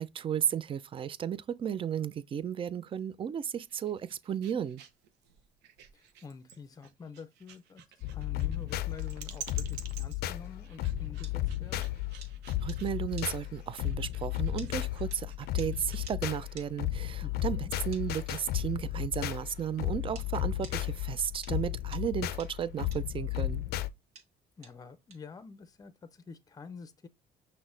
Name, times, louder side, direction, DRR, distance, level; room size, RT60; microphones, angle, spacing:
voice 1, 0.0-4.8 12.6-23.6, right 9 dB, 30° right, 0.4 m, -34 dB
sound 1, 3.5-16.2, right 8 dB, 85° right, 0.7 m, -51 dB
voice 2, 5.9-7.8 8.1-11.8 17.2-17.7 24.6-27.1, left 5 dB, 20° left, 0.5 m, -47 dB
sound 2, 8.0-23.9, left 14 dB, 70° left, 0.5 m, -34 dB
sound 3, 10.6-20.3 20.6-25.9, right 5 dB, 70° right, 1.5 m, -53 dB
6.0 x 2.1 x 3.8 m
cardioid pair, 110°, 17 cm